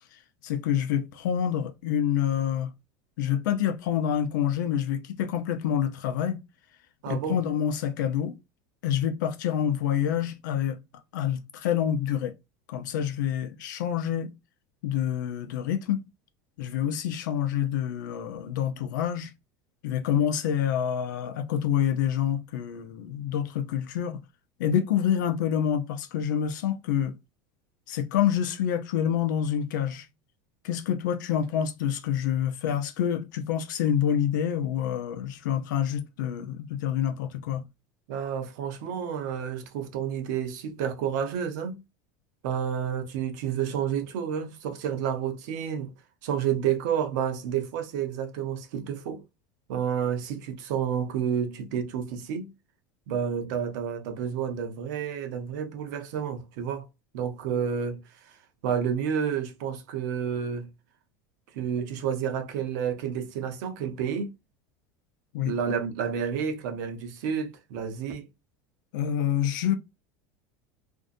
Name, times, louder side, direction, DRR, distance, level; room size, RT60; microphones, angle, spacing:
voice 1, 0.4-2.7 3.2-6.4 7.1-8.4 8.8-10.8 11.1-12.3 12.7-14.3 14.8-16.0 16.6-19.3 19.8-24.2 24.6-27.2 27.9-30.1 30.6-37.6 65.3-65.8 68.9-69.8, left 9 dB, 85° left, 0.5 m, -27 dB
voice 2, 7.0-7.4 38.1-41.8 42.4-45.9 46.2-49.2 49.7-52.5 53.1-56.9 57.1-58.0 58.6-60.7 61.5-64.3 65.4-68.3, right 8 dB, 75° right, 0.7 m, -30 dB
2.6 x 2.2 x 2.4 m
supercardioid pair, 125°, 10 cm